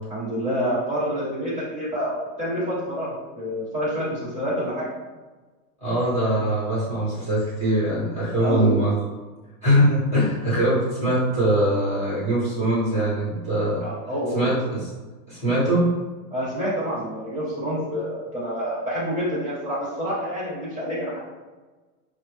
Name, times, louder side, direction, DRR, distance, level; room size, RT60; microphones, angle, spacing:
voice 1, 0.1-4.9 8.3-8.9 13.8-14.6 16.3-21.2, equal, 15° right, -10 dB, 1.4 m, -27 dB
voice 2, 5.8-8.9 9.6-13.8 14.3-14.9 15.3-15.9, right 1 dB, 15° left, -11 dB, 1.4 m, -22 dB
5.0 x 2.0 x 3.3 m, 1.3 s
supercardioid pair, 165°, 46 cm